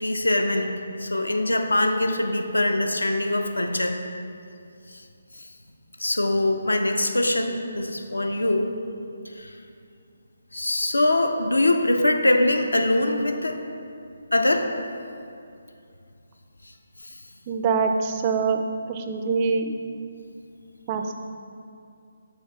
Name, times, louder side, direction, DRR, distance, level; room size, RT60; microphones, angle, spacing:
voice 1, 0.0-4.0 4.9-5.0 5.4-5.5 6.0-8.7 9.4-9.5 10.5-13.6 14.3-14.7, left 1 dB, 75° left, 5 dB, 0.5 m, -23 dB
voice 2, 17.5-18.6 18.9-19.7 20.9-21.1, right 5 dB, 25° right, 5 dB, 0.4 m, -24 dB
5.7 x 3.9 x 4.3 m, 2.4 s
figure-of-eight pair, 145°, 0 cm